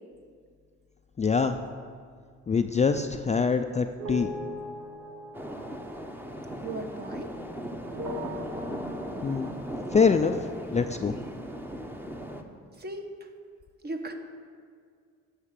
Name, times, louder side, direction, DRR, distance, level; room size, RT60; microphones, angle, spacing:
voice 1, 1.2-1.6 2.5-4.3 9.2-9.6 9.9-10.5 10.7-11.2, left 5 dB, 25° left, 6 dB, 0.4 m, -24 dB
sound 1, 4.0-7.6 7.9-9.6, left 1 dB, 60° right, 1.4 m, -40 dB
sound 2, 5.3-12.4, equal, 5° right, 0.9 m, -38 dB
voice 2, 6.6-7.3 12.7-13.3 13.8-14.1, right 2 dB, 35° right, 5 dB, 1.2 m, -37 dB
10.0 x 5.7 x 7.5 m, 2.1 s
cardioid pair, 90°, 30 cm